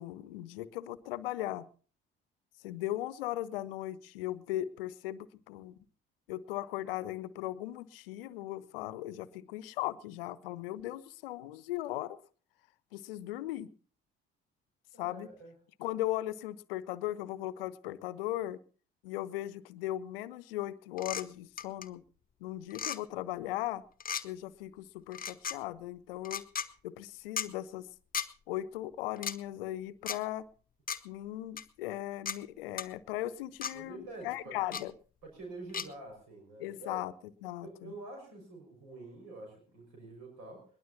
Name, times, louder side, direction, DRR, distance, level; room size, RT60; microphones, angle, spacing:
voice 1, 0.0-1.7 2.6-5.8 6.3-12.2 12.9-13.7 15.0-15.3 15.8-18.6 19.0-22.0 22.4-23.8 24.2-26.4 26.8-27.9 28.5-30.5 31.0-34.9 36.6-37.1 37.4-37.9, left 14 dB, 70° left, 18 dB, 0.8 m, -38 dB
voice 2, 14.9-15.5 33.7-34.6 35.2-37.0 37.6-40.7, right 2 dB, 60° right, 1 dB, 5.7 m, -47 dB
sound 1, 21.0-21.2 21.6-21.9 22.7-23.0 24.0-24.2 25.1-25.6 26.2-26.7 27.4-27.5 28.1-28.3 29.2-29.4 30.1-30.2 30.9-31.0 31.6-31.7 32.3-32.4 32.8-32.9 33.6-33.7 34.7-34.8 35.7-35.9, left 8 dB, 30° left, 1.0 m, -35 dB
21.5 x 19.5 x 2.8 m, 0.41 s
figure-of-eight pair, 45°, 30 cm